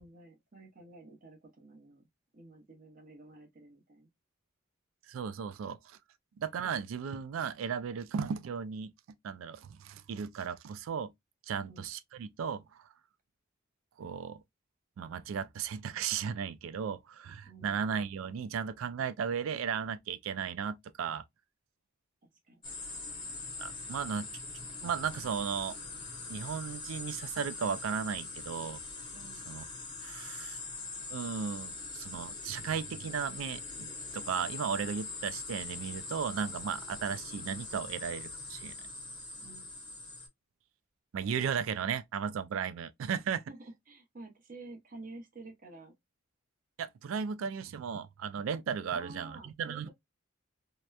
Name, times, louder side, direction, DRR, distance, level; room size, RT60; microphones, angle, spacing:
voice 1, 0.0-4.1 11.6-11.9 17.4-17.8 22.2-22.6 29.1-29.4 39.4-39.7 43.5-45.9 48.9-49.9, right 2 dB, 45° right, 0.7 m, -51 dB
voice 2, 5.1-6.0 6.4-8.9 9.2-11.1 11.5-12.8 14.0-14.4 15.0-21.2 23.6-24.3 24.8-25.8 26.3-28.8 29.5-29.6 30.0-30.6 31.1-38.8 41.1-43.4 46.8-49.9, right 7 dB, 80° right, 0.3 m, -35 dB
sound 1, 22.6-40.3, left 3 dB, 25° left, 0.7 m, -43 dB
2.8 x 2.1 x 2.2 m
head